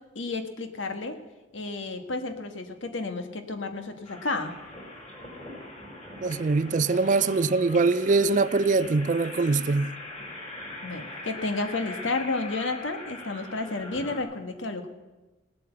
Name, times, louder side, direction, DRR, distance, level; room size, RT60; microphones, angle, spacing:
voice 1, 0.1-1.2 1.5-4.5 10.8-14.9, left 3 dB, 90° left, 1.5 m, -31 dB
sound 1, 4.0-14.2, left 1 dB, 35° left, 4.4 m, -41 dB
voice 2, 6.2-9.9, right 3 dB, 40° right, 0.4 m, -23 dB
17.5 x 8.6 x 7.9 m
head